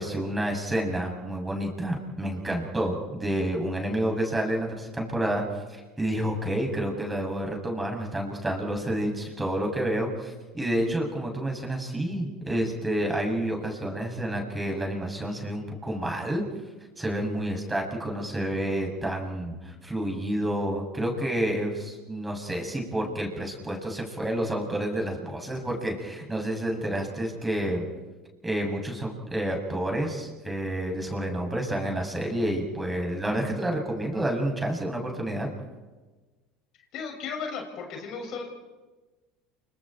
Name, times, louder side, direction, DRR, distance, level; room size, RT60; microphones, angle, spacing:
voice 1, 0.0-16.4 17.0-27.8 28.4-35.5, right 1 dB, 10° right, 1 dB, 7.8 m, -29 dB
voice 2, 36.9-38.4, left 5 dB, 55° left, 2 dB, 6.7 m, -35 dB
29.0 x 26.5 x 4.6 m, 1.2 s
hypercardioid pair, 75°, 0 cm